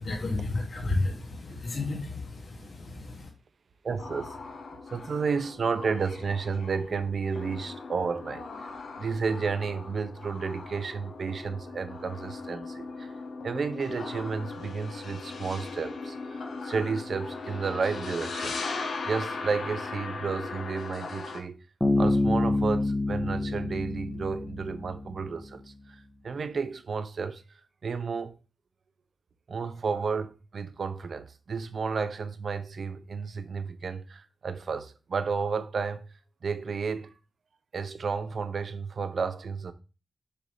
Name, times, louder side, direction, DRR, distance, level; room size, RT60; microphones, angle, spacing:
voice 1, 0.0-3.3, left 2 dB, 60° left, 1.3 m, -32 dB
voice 2, 3.8-4.4 4.9-8.7 9.0-13.1 13.4-18.6 19.1-21.6 22.0-28.4 29.5-36.1 36.4-37.1 37.7-39.7, right 5 dB, 60° right, 0.7 m, -32 dB
sound 1, 4.0-21.4, left 4 dB, 75° left, 0.9 m, -39 dB
Bass guitar, 21.8-25.3, left 2 dB, 5° left, 1.0 m, -27 dB
6.8 x 2.8 x 4.9 m
wide cardioid pair, 130°, 0 cm